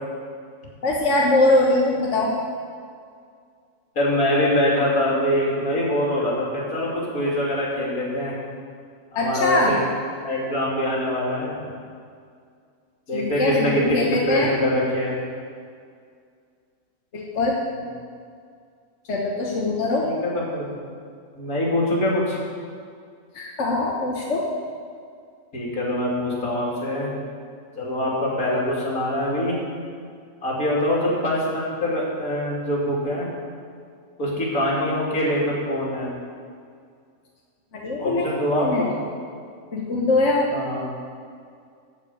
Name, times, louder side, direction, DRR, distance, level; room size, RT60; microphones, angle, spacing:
voice 1, 0.8-2.3 9.1-9.8 13.1-14.5 17.1-17.5 19.1-20.1 23.3-24.4 37.7-38.3 38.5-38.9 39.7-40.5, left 2 dB, 55° left, -3 dB, 1.6 m, -22 dB
voice 2, 3.9-8.3 9.1-9.8 10.2-11.6 13.1-14.0 14.3-15.1 17.7-17.8 20.0-20.9 21.4-22.4 25.5-27.1 27.8-29.6 30.4-33.3 34.2-36.1 38.0-38.9 40.5-40.9, left 1 dB, 80° left, -5 dB, 3.3 m, -24 dB
14.0 x 5.1 x 8.5 m, 2.2 s
omnidirectional pair, 1.5 m